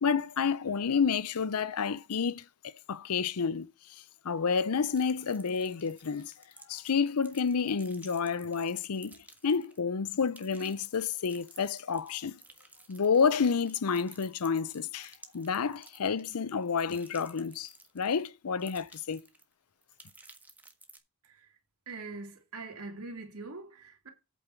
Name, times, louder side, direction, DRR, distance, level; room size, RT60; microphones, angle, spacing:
voice 1, 0.0-6.3 6.7-9.2 9.4-12.4 12.9-19.2, left 6 dB, 80° left, 0.6 m, -30 dB
sound 1, 4.9-9.9 10.2-18.2 18.6-19.5 19.8-21.0, right 2 dB, 10° right, 1.4 m, -55 dB
voice 2, 21.2-21.6 21.9-24.1, right 3 dB, 75° right, 3.0 m, -43 dB
8.5 x 5.3 x 5.9 m
head